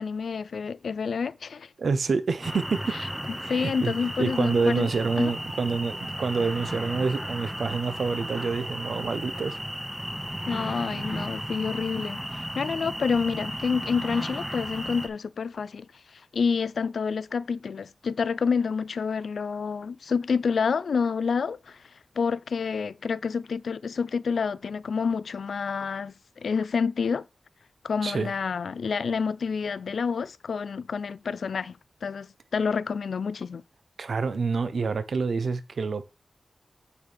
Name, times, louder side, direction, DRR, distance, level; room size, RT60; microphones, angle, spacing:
voice 1, 0.0-1.7 3.5-4.9 5.2-5.3 10.5-15.9 16.1-21.8 22.2-27.2 27.8-31.8 32.0-33.6, left 5 dB, 90° left, 0.4 m, -28 dB
voice 2, 1.8-2.9 3.4-3.9 4.2-9.6 28.0-28.3 34.0-36.1, right 4 dB, 80° right, 0.9 m, -27 dB
sound 1, 2.4-15.1, equal, 10° right, 1.4 m, -34 dB
8.1 x 7.0 x 3.4 m
wide cardioid pair, 85°, 0 cm